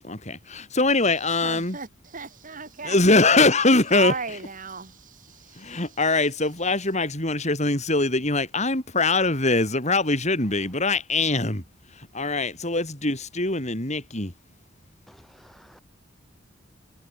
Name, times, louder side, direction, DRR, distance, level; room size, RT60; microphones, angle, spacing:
voice 1, 0.0-1.8 2.8-4.1 5.6-11.6 12.1-14.3, left 2 dB, 35° left, 6.0 m, -22 dB
voice 2, 1.4-3.0 3.9-6.0, right 5 dB, 45° right, 3.4 m, -35 dB
voice 3, 15.1-15.8, equal, ahead, 6.0 m, -53 dB
head